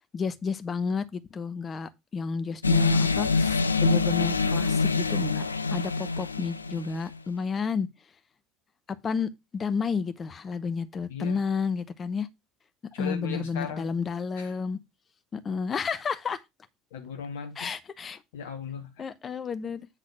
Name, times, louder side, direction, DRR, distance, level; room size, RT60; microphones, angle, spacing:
voice 1, 0.1-5.4 5.7-7.9 9.0-12.3 13.0-14.8 15.3-16.4 17.6-18.2 19.0-19.9, left 5 dB, 30° left, 1.0 m, -31 dB
sound 1, 2.6-7.0, left 4 dB, 85° left, 0.4 m, -25 dB
voice 2, 11.1-11.4 12.9-13.9 14.4-14.5 16.9-17.7 18.3-19.0, left 7 dB, 65° left, 0.8 m, -37 dB
8.4 x 3.9 x 6.1 m
figure-of-eight pair, 65°, 0 cm